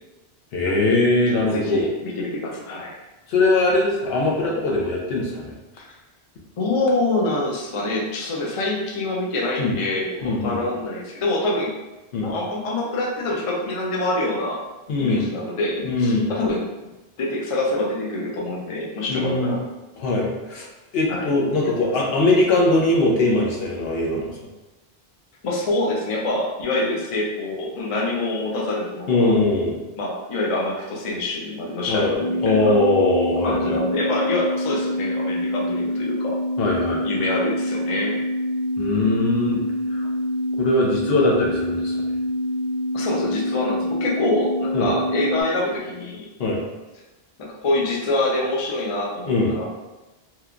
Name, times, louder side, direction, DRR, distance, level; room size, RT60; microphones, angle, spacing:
voice 1, 0.5-1.8 3.3-5.5 9.6-9.8 10.2-10.6 12.1-12.3 14.9-15.3 15.8-16.3 19.1-19.5 20.0-20.7 20.9-24.3 29.1-29.8 31.9-32.1 32.4-33.8 36.6-37.0 38.8-39.6 39.9-40.1 40.6-42.1 44.7-44.9 46.4-46.6 49.3-49.6, left 2 dB, 75° left, -2 dB, 0.8 m, -21 dB
voice 2, 1.4-3.0 5.7-5.8 6.6-11.7 12.2-14.6 15.0-16.7 17.2-19.6 21.1-21.3 21.6-21.7 25.4-29.3 30.0-32.8 33.4-36.4 37.0-38.2 42.9-46.3 47.4-49.7, left 2 dB, 45° left, -3 dB, 0.4 m, -25 dB
sound 1, 32.1-45.4, left 1 dB, 65° right, 0.7 m, -26 dB
3.0 x 2.1 x 2.4 m, 1.1 s
omnidirectional pair, 1.0 m